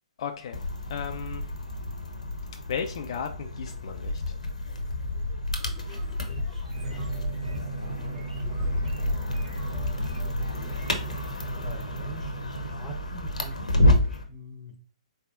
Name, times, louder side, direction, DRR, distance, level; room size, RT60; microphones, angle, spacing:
voice 1, 0.2-0.6 0.9-1.4 2.7-4.1, left 7 dB, 45° left, 5 dB, 0.4 m, -34 dB
sound 1, 0.5-14.2, left 1 dB, 75° left, 0.8 m, -29 dB
sound 2, 5.6-11.5, right 1 dB, 80° right, 1.2 m, -51 dB
voice 2, 6.3-8.3 11.6-14.7, right 2 dB, 5° left, 2 dB, 0.9 m, -45 dB
Drum, 6.7-12.8, right 4 dB, 55° right, 0.7 m, -39 dB
4.2 x 3.5 x 2.5 m, 0.44 s
figure-of-eight pair, 125°, 4 cm